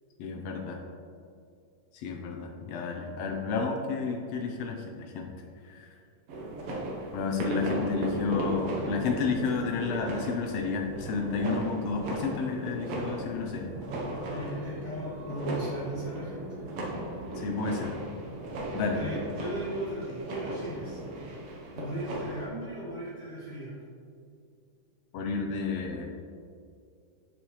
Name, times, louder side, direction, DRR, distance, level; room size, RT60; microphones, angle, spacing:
voice 1, 0.2-0.8 1.9-5.3 5.6-5.9 7.1-13.7 17.3-17.9 18.7-19.0 25.1-26.1, left 4 dB, 90° left, 1 dB, 1.4 m, -31 dB
sound 1, 6.3-22.5, right 1 dB, 65° right, 1.7 m, -36 dB
voice 2, 14.3-16.6 18.9-21.4 21.7-23.7, equal, 35° left, -9 dB, 1.2 m, -37 dB
7.1 x 7.0 x 3.1 m, 2.4 s
omnidirectional pair, 3.6 m